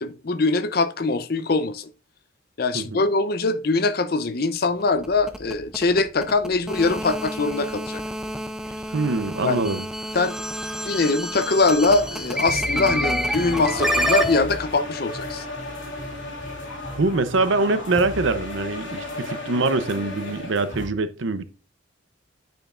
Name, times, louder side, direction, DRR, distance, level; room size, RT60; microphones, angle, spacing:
voice 1, 0.0-1.9 2.6-8.0 9.4-9.7 10.1-10.4 10.8-15.4, left 3 dB, 50° left, 0.6 m, -22 dB
sound 1, 4.8-14.4, equal, 5° right, 0.5 m, -28 dB
voice 2, 8.9-9.9 17.0-21.4, right 3 dB, 70° right, 0.7 m, -24 dB
sound 2, 11.8-20.9, left 1 dB, 70° left, 2.5 m, -34 dB
9.0 x 5.2 x 2.4 m
head